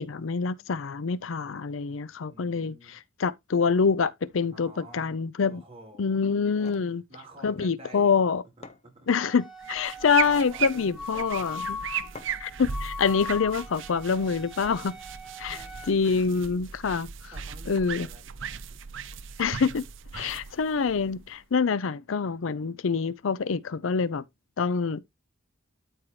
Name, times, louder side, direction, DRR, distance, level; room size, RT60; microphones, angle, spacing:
voice 1, 0.0-2.7 3.2-5.6 6.0-7.0 7.4-8.4 9.1-11.8 12.4-14.9 15.4-15.6 15.9-17.1 17.7-18.1 19.4-19.8 20.1-24.2 24.6-25.0, left 5 dB, 75° left, 0.5 m, -26 dB
voice 2, 2.2-2.9 4.5-5.2 5.5-6.2 6.8-8.2 8.6-9.1 9.6-9.7 10.0-11.8 14.7-15.0 15.4-16.6 17.2-18.8, equal, 30° right, 4.3 m, -50 dB
sound 1, 6.4-6.9 8.2-8.3 8.6-9.4 10.1-10.5 12.1-12.6, left 3 dB, 35° left, 1.0 m, -48 dB
Wind instrument woodwind instrument, 9.1-15.9, left 4 dB, 5° right, 2.2 m, -40 dB
sound 2, 9.6-21.6, right 8 dB, 70° right, 0.7 m, -37 dB
12.5 x 4.6 x 3.2 m
head